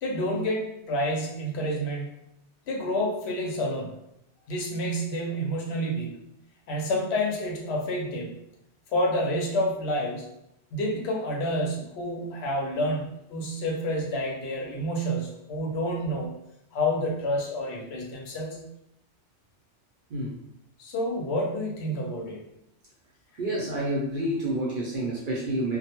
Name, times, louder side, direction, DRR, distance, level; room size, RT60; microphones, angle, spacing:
voice 1, 0.0-2.1 2.7-3.9 4.5-6.2 6.7-8.4 8.9-10.3 10.7-16.3 16.7-18.7 20.8-22.4, equal, 70° left, -1 dB, 0.8 m, -29 dB
voice 2, 23.4-25.8, right 1 dB, 55° right, -5 dB, 0.7 m, -29 dB
2.2 x 2.0 x 2.9 m, 0.80 s
omnidirectional pair, 1.2 m